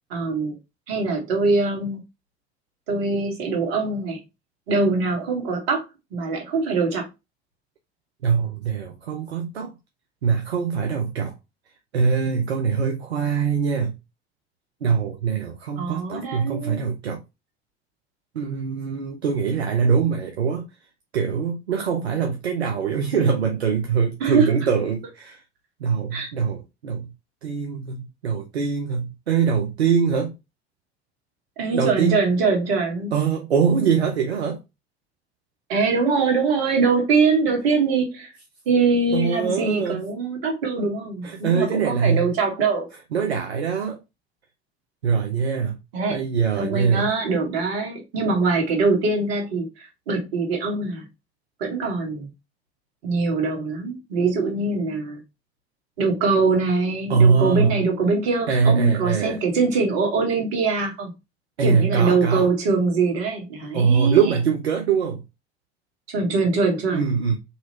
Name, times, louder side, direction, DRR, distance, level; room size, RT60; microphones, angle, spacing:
voice 1, 0.1-0.6 0.9-2.0 2.9-4.2 4.7-5.9 6.1-7.1 15.8-16.8 24.2-24.7 26.1-26.3 31.6-33.1 35.7-38.3 38.6-42.9 45.9-46.2 46.6-51.1 51.6-52.3 53.0-55.2 56.0-61.1 61.6-64.2 66.1-67.1, right 4 dB, 65° right, 1.5 m, -23 dB
voice 2, 8.2-9.7 10.2-11.3 11.9-13.9 14.8-17.2 18.3-20.6 21.1-25.4 25.8-27.1 27.4-30.3 31.7-32.2 33.1-34.6 39.1-40.0 41.2-42.3 43.1-44.0 45.0-45.8 46.1-47.1 57.1-57.8 58.5-59.4 61.6-62.5 63.7-65.2 66.9-67.4, right 6 dB, 85° right, 0.5 m, -22 dB
4.0 x 2.9 x 2.8 m
figure-of-eight pair, 65°, 31 cm